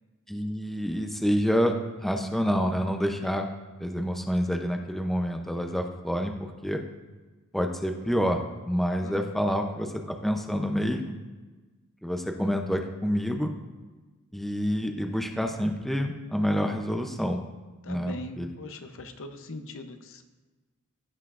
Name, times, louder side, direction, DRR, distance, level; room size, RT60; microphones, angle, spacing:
voice 1, 0.3-1.8 2.0-3.5 3.8-6.8 7.5-8.4 8.7-11.1 12.0-13.5 14.3-17.4 17.9-18.5, equal, ahead, 3 dB, 0.5 m, -28 dB
voice 2, 9.0-9.3 17.8-20.2, left 2 dB, 65° left, 7 dB, 0.7 m, -41 dB
16.0 x 5.5 x 2.5 m, 1.3 s
head